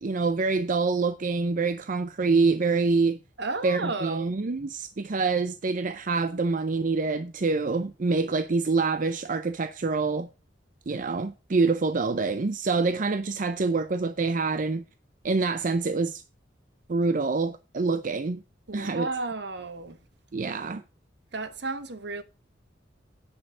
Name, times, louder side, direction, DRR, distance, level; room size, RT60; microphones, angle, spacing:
voice 1, 0.0-3.2 3.6-10.3 10.9-14.8 15.2-16.2 16.9-18.4 18.7-19.1 20.3-20.8, right 4 dB, 45° right, 0.6 m, -26 dB
voice 2, 3.4-4.4 18.7-20.0 21.3-22.2, right 3 dB, 65° right, 1.2 m, -33 dB
9.6 x 5.7 x 6.6 m
head